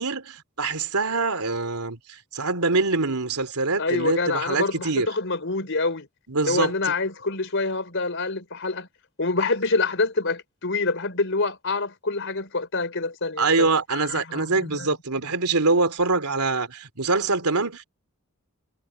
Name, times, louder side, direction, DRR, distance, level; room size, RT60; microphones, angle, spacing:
voice 1, 0.0-5.1 6.3-6.9 13.4-17.8, right 3 dB, 85° right, 3.1 m, -24 dB
voice 2, 3.8-6.1 6.4-8.9 9.2-14.9, left 3 dB, 55° left, 4.7 m, -26 dB
head